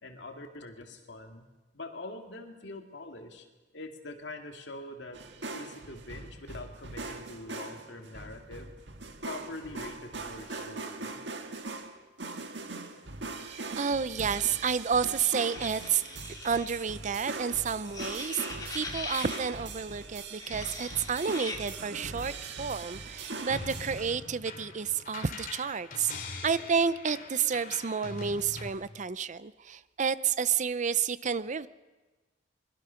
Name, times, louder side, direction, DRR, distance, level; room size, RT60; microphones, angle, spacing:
voice 1, 0.0-3.5 3.7-5.2 5.5-8.7 9.2-11.2, left 2 dB, 70° left, 4 dB, 2.4 m, -44 dB
sound 1, 5.1-24.2, right 3 dB, 70° right, 1.8 m, -41 dB
voice 2, 13.8-16.0 16.4-18.5 18.7-26.1 26.4-31.7, right 6 dB, 45° right, 16 dB, 0.6 m, -30 dB
sound 2, 15.3-16.9 17.9-19.5 20.3-21.6, left 3 dB, 20° left, 2.8 m, -41 dB
sound 3, 23.5-28.7, left 3 dB, 50° left, 2.7 m, -42 dB
24.5 x 22.0 x 5.8 m, 1.2 s
head